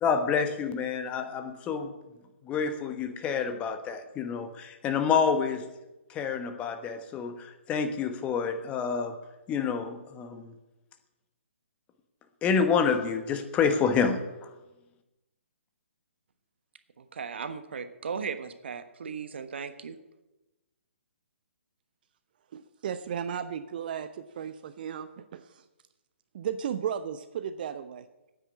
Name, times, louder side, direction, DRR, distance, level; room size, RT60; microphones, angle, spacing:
voice 1, 0.0-1.9 2.4-5.7 6.1-9.2 9.5-10.5 12.4-14.5, left 6 dB, 20° left, 9 dB, 1.2 m, -28 dB
voice 2, 17.0-20.0, right 6 dB, 60° right, 10 dB, 1.3 m, -37 dB
voice 3, 22.5-25.7 26.3-28.0, right 8 dB, 45° right, 11 dB, 0.7 m, -35 dB
10.0 x 9.1 x 9.7 m, 1.0 s
figure-of-eight pair, 130°, 7 cm